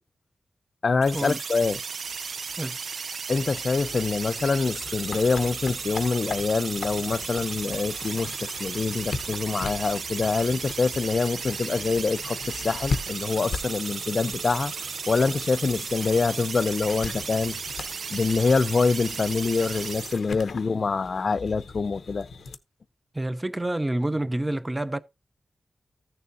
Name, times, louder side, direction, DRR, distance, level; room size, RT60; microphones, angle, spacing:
voice 1, 0.8-1.8 3.3-14.7 15.1-17.6 18.1-22.3, left 4 dB, 45° left, 0.4 m, -25 dB
sound 1, 1.0-20.2, right 5 dB, 70° right, 0.5 m, -35 dB
sound 2, 3.8-22.6, left 4 dB, 75° left, 0.9 m, -39 dB
voice 2, 23.1-25.0, right 1 dB, 15° right, 0.6 m, -28 dB
15.0 x 6.8 x 2.6 m
wide cardioid pair, 170°, 0 cm